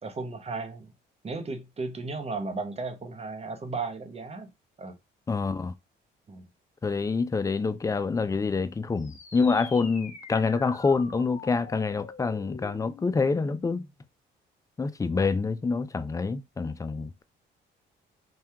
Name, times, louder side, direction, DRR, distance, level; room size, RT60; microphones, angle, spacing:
voice 1, 0.0-0.9 1.2-4.5 4.8-4.9 6.3-6.4, right 3 dB, 30° right, 0.7 m, -35 dB
voice 2, 5.3-5.7 6.8-13.8 14.8-17.2, left 4 dB, 15° left, 0.3 m, -27 dB
sound 1, 9.0-14.0, left 4 dB, 40° left, 0.9 m, -46 dB
2.7 x 2.3 x 3.4 m
cardioid pair, 90°, 20 cm